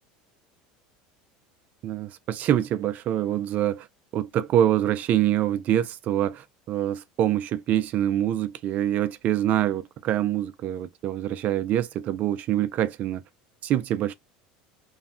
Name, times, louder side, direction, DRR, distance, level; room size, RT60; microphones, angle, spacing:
voice 1, 1.8-3.9 4.1-13.2 13.6-14.1, right 11 dB, 50° right, 0.4 m, -25 dB
3.1 x 2.1 x 2.5 m
supercardioid pair, 110°, 4 cm